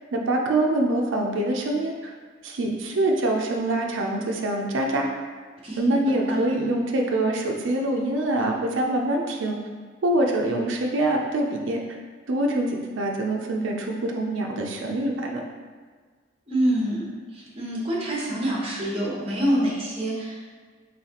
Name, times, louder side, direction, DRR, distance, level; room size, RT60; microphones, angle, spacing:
voice 1, 0.1-2.1 2.4-5.1 5.8-9.6 10.0-11.8 12.3-15.4, right 1 dB, 75° right, 1 dB, 0.4 m, -25 dB
voice 2, 5.6-6.0 16.5-17.1 17.3-20.3, equal, 30° right, -5 dB, 0.9 m, -26 dB
4.0 x 3.1 x 2.8 m, 1.5 s
head